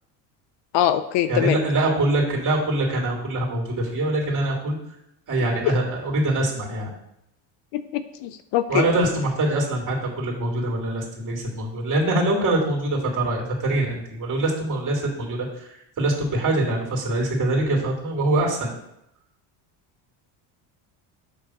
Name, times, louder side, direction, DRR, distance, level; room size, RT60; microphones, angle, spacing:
voice 1, 0.7-1.6 7.7-8.9, left 12 dB, 60° left, 12 dB, 0.5 m, -23 dB
voice 2, 1.3-4.8 5.3-6.9 8.7-15.7 16.0-18.7, right 2 dB, 35° right, -1 dB, 3.0 m, -24 dB
7.8 x 3.4 x 6.4 m, 0.80 s
cardioid pair, 120°, 50 cm